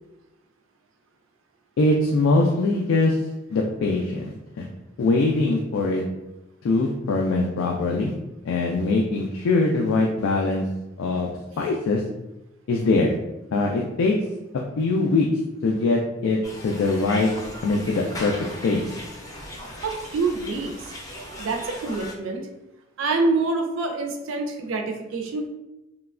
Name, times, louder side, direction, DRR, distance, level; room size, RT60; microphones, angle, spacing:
voice 1, 1.8-3.2 3.5-4.7 5.0-6.0 6.6-8.1 8.4-10.6 11.0-12.0 12.7-13.1 13.5-14.2 14.8-15.3 15.6-16.4 16.6-17.3 17.6-18.3 18.6-19.0, left 3 dB, 90° left, 0 dB, 0.3 m, -22 dB
sound 1, 16.4-22.1, left 1 dB, 20° left, 0.5 m, -38 dB
voice 2, 19.8-20.9 21.4-22.5 23.0-25.5, right 3 dB, 80° right, 4 dB, 0.4 m, -26 dB
3.0 x 2.2 x 2.4 m, 0.97 s
head